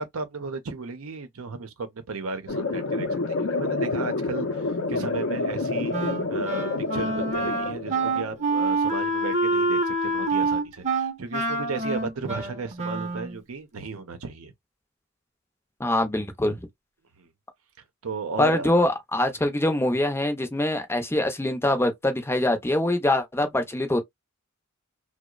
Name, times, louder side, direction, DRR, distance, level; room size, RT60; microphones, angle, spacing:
voice 1, 0.0-5.9 6.3-14.5 17.2-17.3 18.0-18.7, right 4 dB, 85° right, 0.6 m, -34 dB
sound 1, 2.5-8.5, left 3 dB, 65° left, 0.5 m, -28 dB
Wind instrument woodwind instrument, 5.9-13.4, right 2 dB, 35° right, 0.7 m, -26 dB
voice 2, 15.8-16.6 18.4-24.0, left 1 dB, 10° left, 0.5 m, -24 dB
2.8 x 2.0 x 2.3 m
head